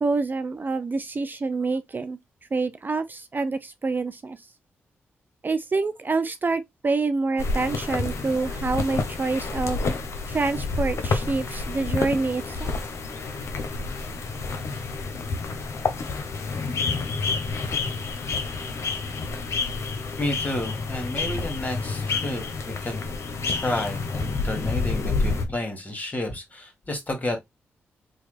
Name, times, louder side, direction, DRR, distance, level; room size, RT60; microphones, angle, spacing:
voice 1, 0.0-2.2 2.5-4.4 5.4-9.8 10.3-12.7, right 3 dB, 35° right, 0.4 m, -27 dB
sound 1, 7.4-25.5, left 4 dB, 65° left, 0.7 m, -29 dB
voice 2, 20.2-23.0 23.5-27.4, left 1 dB, 30° left, 1.5 m, -31 dB
3.1 x 2.2 x 3.3 m
supercardioid pair, 45°, 5 cm